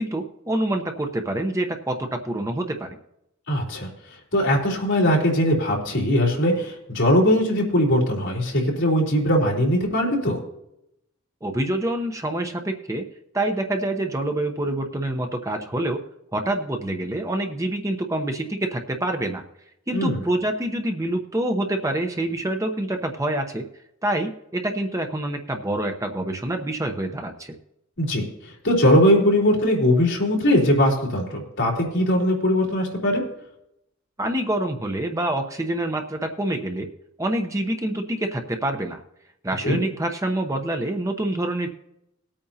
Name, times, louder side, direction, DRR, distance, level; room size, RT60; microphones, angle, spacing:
voice 1, 0.0-3.0 11.4-13.0 13.3-16.0 16.3-19.4 19.9-23.6 24.0-27.6 34.2-36.9 37.2-39.0 39.4-41.7, right 1 dB, 15° right, 4 dB, 0.8 m, -26 dB
voice 2, 3.5-3.9 4.3-10.4 19.9-20.2 28.0-28.2 28.6-33.2 39.6-39.8, equal, 60° left, -2 dB, 3.7 m, -20 dB
20.0 x 8.7 x 2.8 m, 0.80 s
head